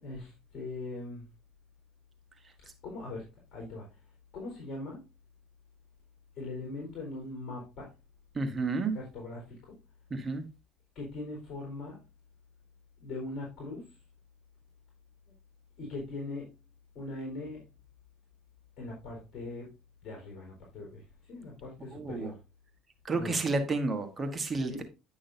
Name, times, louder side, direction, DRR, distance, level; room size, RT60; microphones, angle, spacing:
voice 1, 0.0-1.2 2.8-4.0 4.3-5.0 6.3-7.9 8.9-9.8 10.9-12.0 13.0-14.0 15.8-16.5 16.9-17.7 18.8-19.7 20.0-22.4 23.1-23.4 24.6-24.8, left 2 dB, 50° left, 4.1 m, -41 dB
voice 2, 8.3-8.9 10.1-10.4 21.9-22.3 23.0-24.8, right 3 dB, 25° right, 1.3 m, -31 dB
10.0 x 6.2 x 2.7 m
cardioid pair, 120°, 0 cm